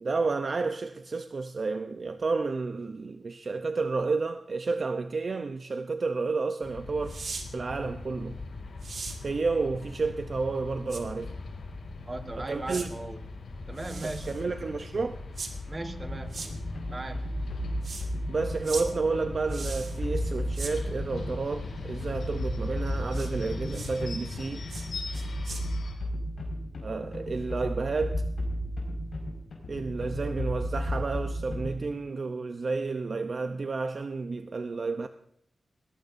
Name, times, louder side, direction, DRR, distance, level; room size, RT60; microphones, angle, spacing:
voice 1, 0.0-7.2 7.5-8.4 9.2-11.3 12.4-12.9 14.0-15.2 18.3-24.7 26.8-28.2 29.7-35.1, right 4 dB, 45° right, 0.7 m, -31 dB
sound 1, 6.6-26.0, left 3 dB, 80° left, 4.9 m, -41 dB
sound 2, 7.1-7.5 8.8-9.2 10.9-11.0 12.7-12.9 13.8-14.4 15.4-15.5 16.3-16.5 17.8-18.1 18.6-18.9 19.5-20.0 20.5-20.7 23.1-23.3 23.7-23.9 24.7-24.9 25.1-25.6, right 4 dB, 60° right, 2.2 m, -39 dB
voice 2, 12.1-13.2 13.7-14.3 15.7-16.4 16.9-17.3, right 2 dB, 25° right, 1.4 m, -37 dB
sound 3, 16.0-31.9, equal, 50° left, 5.2 m, -34 dB
20.5 x 18.5 x 2.7 m
wide cardioid pair, 140°, 0 cm